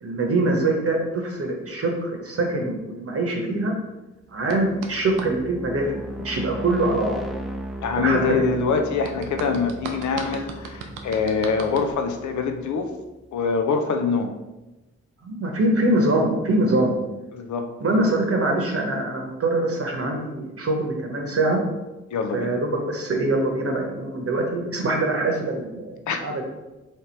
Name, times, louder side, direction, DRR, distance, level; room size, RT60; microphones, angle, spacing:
voice 1, 0.0-3.7 4.3-6.0 6.2-7.2 7.9-8.5 15.2-17.0 17.8-21.6 22.3-26.4, right 2 dB, 45° right, 1 dB, 0.9 m, -23 dB
sound 1, 4.3-13.1, right 1 dB, ahead, 0.6 m, -37 dB
sound 2, 4.5-5.3 9.0-11.9, right 5 dB, 85° right, 0.5 m, -36 dB
voice 2, 7.8-12.9 13.3-14.3 17.3-17.7 22.1-22.5 26.1-26.2, left 5 dB, 65° left, 5 dB, 0.6 m, -24 dB
3.3 x 2.8 x 4.3 m, 1.1 s
supercardioid pair, 40°, 32 cm